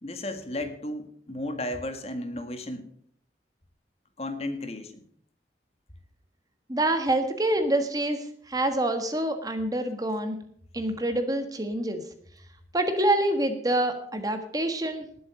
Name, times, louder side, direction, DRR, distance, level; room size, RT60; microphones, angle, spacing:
voice 1, 0.0-2.8 4.2-5.0, left 1 dB, 35° left, 7 dB, 1.8 m, -34 dB
voice 2, 6.7-10.4 10.7-12.0 12.7-15.0, right 1 dB, 20° right, 7 dB, 1.5 m, -26 dB
19.0 x 7.8 x 4.9 m, 0.64 s
head